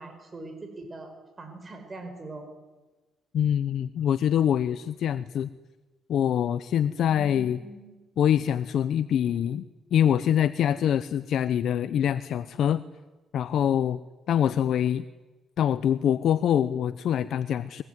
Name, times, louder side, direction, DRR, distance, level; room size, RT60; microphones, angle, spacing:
voice 1, 0.0-2.5 7.1-8.0, right 2 dB, 30° right, 5 dB, 5.1 m, -42 dB
voice 2, 3.3-5.5 6.1-7.6 8.2-9.7 9.9-12.8 13.3-14.0 14.3-15.1 15.6-17.8, left 9 dB, 70° left, 13 dB, 0.8 m, -24 dB
23.0 x 22.5 x 9.5 m, 1.2 s
cardioid pair, 90°, 0 cm